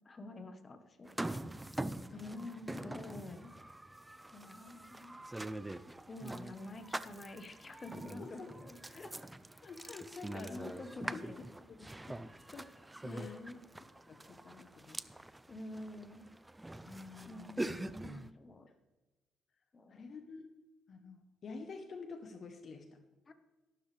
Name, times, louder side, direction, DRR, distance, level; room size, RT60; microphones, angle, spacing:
voice 1, 0.0-1.2 2.2-3.5 4.3-5.2 6.1-9.1 10.5-11.4 13.0-13.6 15.5-16.3 17.3-18.7 19.7-20.0 23.3-23.4, left 2 dB, 35° left, 8 dB, 1.2 m, -48 dB
sound 1, 1.1-18.3, right 1 dB, 10° right, 0.5 m, -44 dB
voice 2, 2.1-2.5 8.2-8.5 9.6-10.8 11.1-11.2 11.7-11.9 12.5-12.7 13.1-13.3 14.1-15.0 16.8-17.7 19.9-20.5 20.9-22.9, left 4 dB, 50° left, 6 dB, 1.0 m, -48 dB
13.5 x 12.0 x 3.4 m, 1.1 s
cardioid pair, 90°, 0 cm